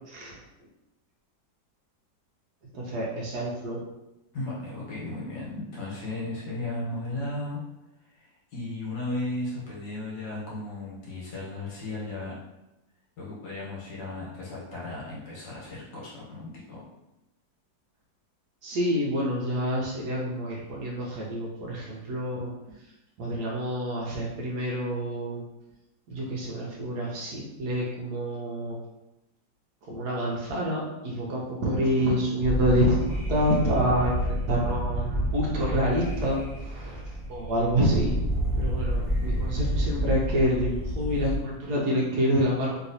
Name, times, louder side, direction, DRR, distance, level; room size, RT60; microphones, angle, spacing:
voice 1, 0.1-0.4 2.7-3.8 18.6-22.5 23.2-25.4 26.1-28.8 29.9-37.0 37.3-38.2 38.5-42.8, equal, 65° right, -4 dB, 1.1 m, -27 dB
voice 2, 4.3-7.6 8.2-12.3 13.2-16.8, left 2 dB, 70° left, -6 dB, 1.7 m, -35 dB
sound 1, 32.4-41.4, equal, 5° left, 0.8 m, -29 dB
3.2 x 2.9 x 2.6 m, 0.93 s
omnidirectional pair, 2.0 m